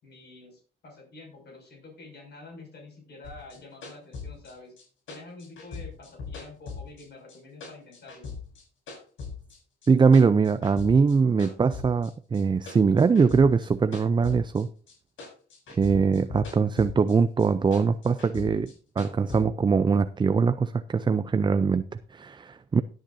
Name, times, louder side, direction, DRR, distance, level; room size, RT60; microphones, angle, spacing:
voice 1, 0.0-4.8 5.1-8.4, left 2 dB, 55° left, 6.1 m, -47 dB
sound 1, 3.2-7.4 7.6-9.6 9.8-11.1 11.4-14.9 15.2-17.1 17.4-19.4, left 5 dB, 75° left, 6.5 m, -40 dB
voice 2, 9.9-14.7 15.8-22.8, right 5 dB, 25° right, 0.5 m, -22 dB
16.5 x 9.0 x 2.7 m
cardioid pair, 90°, 20 cm